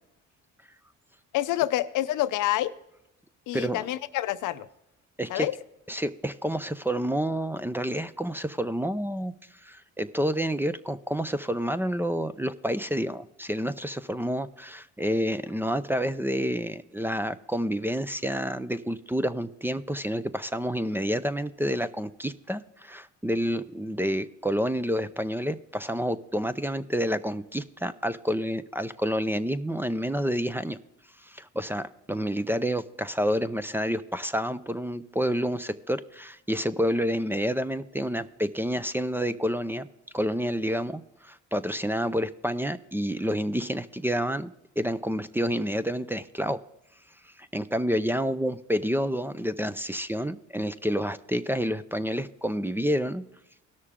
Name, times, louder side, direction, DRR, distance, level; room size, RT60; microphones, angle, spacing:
voice 1, 1.3-2.7 3.5-4.7 5.3-5.6, left 14 dB, 85° left, 13 dB, 0.6 m, -27 dB
voice 2, 3.5-3.9 5.2-5.5 5.9-9.3 9.6-30.8 31.2-39.9 40.1-46.6 47.2-53.2, equal, 5° right, 13 dB, 0.4 m, -29 dB
17.5 x 6.5 x 3.6 m, 0.85 s
cardioid pair, 90°, 30 cm